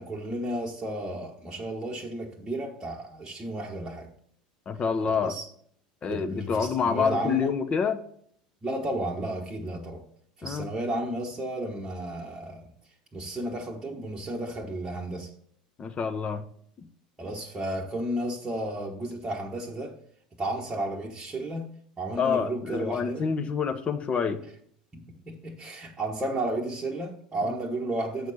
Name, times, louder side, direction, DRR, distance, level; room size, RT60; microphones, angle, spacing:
voice 1, 0.0-4.1 5.2-5.5 6.1-7.5 8.6-10.0 10.4-12.7 13.1-15.3 17.2-20.0 20.4-21.7 22.0-23.3 24.9-28.3, right 1 dB, 15° right, 1.2 m, -33 dB
voice 2, 4.7-5.3 6.0-8.0 10.4-10.7 15.8-16.4 22.2-24.4, left 6 dB, 25° left, 0.8 m, -27 dB
8.2 x 6.4 x 4.2 m
figure-of-eight pair, 75°, 4 cm